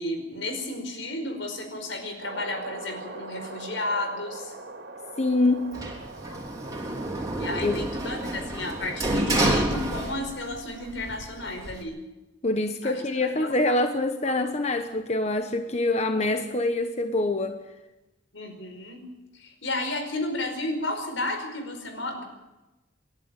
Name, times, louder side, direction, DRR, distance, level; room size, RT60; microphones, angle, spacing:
voice 1, 0.0-4.5 7.4-12.0 12.8-13.8 14.2-14.3 18.3-19.0 19.3-22.2, left 2 dB, 80° left, 6 dB, 5.1 m, -33 dB
sound 1, 2.2-8.7, right 2 dB, 70° right, 3.0 m, -42 dB
voice 2, 5.2-5.8 7.6-7.8 12.4-17.6, left 2 dB, 35° left, 7 dB, 1.1 m, -25 dB
Sliding door, 5.7-10.6 10.9-11.8, right 1 dB, 20° right, 3.4 m, -28 dB
28.5 x 11.5 x 9.1 m, 1.1 s
head